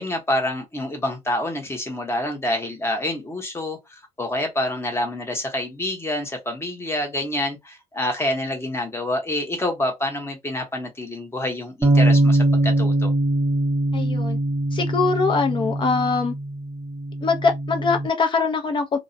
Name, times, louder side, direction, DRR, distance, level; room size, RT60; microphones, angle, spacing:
voice 1, 0.0-13.1, left 1 dB, 15° left, 0.9 m, -27 dB
sound 1, 11.8-18.1, right 1 dB, 15° right, 0.6 m, -22 dB
voice 2, 13.9-14.4 14.7-16.3 17.2-19.0, left 4 dB, 30° left, 0.5 m, -22 dB
2.3 x 2.0 x 2.6 m
cardioid pair, 125°, 15 cm